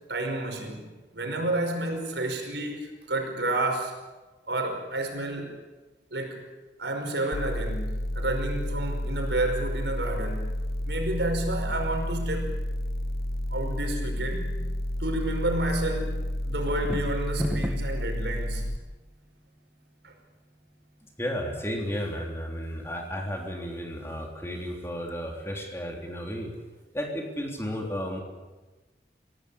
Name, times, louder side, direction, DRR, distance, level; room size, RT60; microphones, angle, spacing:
voice 1, 0.1-4.0 4.5-5.6 6.1-6.4 6.8-10.5 10.9-12.6 13.5-14.6 15.0-18.7 20.0-20.1, right 2 dB, 80° right, 3 dB, 5.4 m, -30 dB
sound 1, 7.3-18.8, left 1 dB, 55° left, 1.3 m, -31 dB
sound 2, 16.7-18.0, equal, 5° right, 1.5 m, -31 dB
voice 2, 21.2-26.5 26.9-28.2, equal, 15° left, 1 dB, 3.4 m, -33 dB
25.0 x 17.0 x 8.6 m, 1.2 s
head